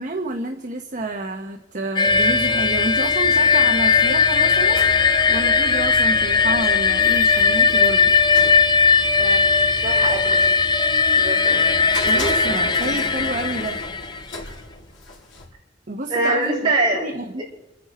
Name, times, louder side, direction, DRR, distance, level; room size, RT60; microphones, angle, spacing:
voice 1, 0.0-4.9 5.3-8.1 12.0-13.8 15.9-16.7 17.0-17.4, right 2 dB, 45° right, 3 dB, 1.2 m, -29 dB
sound 1, 2.0-15.5, left 1 dB, 65° left, 3.9 m, -35 dB
sound 2, 2.0-14.4, left 5 dB, 25° left, 0.6 m, -18 dB
voice 2, 9.8-10.5 11.1-11.6 16.1-17.1, right 2 dB, 25° right, -5 dB, 6.3 m, -23 dB
27.5 x 10.0 x 4.4 m, 0.91 s
head